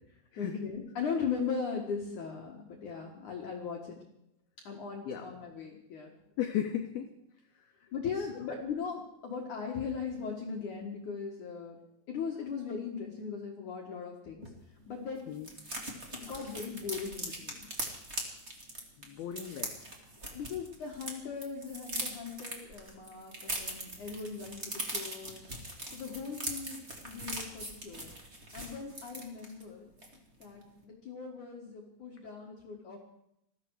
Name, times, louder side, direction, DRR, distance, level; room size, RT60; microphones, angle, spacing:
voice 1, 0.4-4.0 4.6-6.1 7.9-11.8 12.1-14.5 14.9-15.3 16.1-17.7 20.3-25.4 25.9-28.1 28.5-29.9 30.4-33.0, left 6 dB, 55° left, -1 dB, 2.4 m, -39 dB
voice 2, 6.4-7.1 7.6-7.7 8.2-8.4 15.3-15.5 16.3-16.5 19.0-19.8, left 10 dB, 75° left, 5 dB, 2.3 m, -36 dB
sound 1, 14.4-14.5 14.8-14.9 15.1-21.1 21.4-29.6 30.0-30.2 30.4-30.7, right 1 dB, 25° right, 1.5 m, -41 dB
20.5 x 14.5 x 4.8 m, 0.78 s
omnidirectional pair, 5.6 m